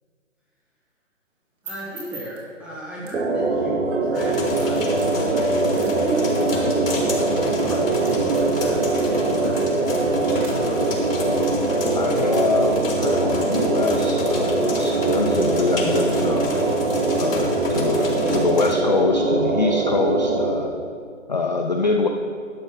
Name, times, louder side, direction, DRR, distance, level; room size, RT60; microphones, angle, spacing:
sound 1, 1.3-10.5, right 4 dB, 40° right, 2.7 m, -47 dB
voice 1, 1.6-11.0, right 1 dB, 5° right, -8 dB, 1.3 m, -35 dB
sound 2, 3.1-20.5, right 3 dB, 65° right, 1.6 m, -22 dB
sound 3, 4.1-18.7, left 2 dB, 85° left, 2.7 m, -30 dB
voice 2, 11.9-16.5 17.2-20.7 21.3-22.1, left 3 dB, 35° left, 3 dB, 0.4 m, -24 dB
11.5 x 6.2 x 5.1 m, 2.1 s
hypercardioid pair, 160°, 39 cm